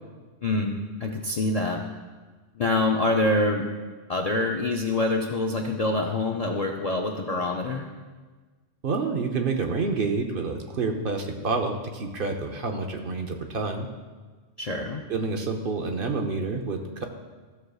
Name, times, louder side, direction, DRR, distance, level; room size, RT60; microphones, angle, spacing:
voice 1, 0.4-1.8 2.5-3.7 4.1-7.9 14.6-15.0, left 2 dB, 50° left, 1 dB, 0.4 m, -25 dB
voice 2, 8.8-13.9 15.1-17.0, right 4 dB, 55° right, 3 dB, 0.8 m, -28 dB
14.5 x 6.4 x 2.3 m, 1.4 s
omnidirectional pair, 1.2 m